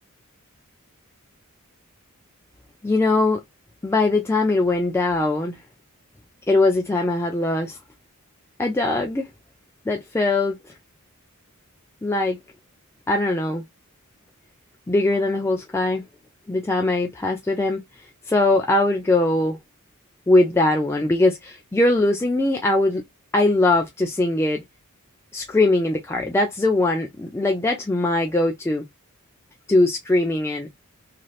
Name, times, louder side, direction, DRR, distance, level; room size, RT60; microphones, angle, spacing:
voice 1, 2.8-3.4 3.8-5.6 6.5-7.8 8.6-9.3 9.9-10.8 12.0-12.4 13.1-13.6 14.9-16.0 16.5-19.6 20.3-23.0 23.3-24.6 25.3-28.8 29.7-30.7, left 2 dB, 10° left, 0.3 m, -21 dB
3.1 x 2.8 x 2.3 m
head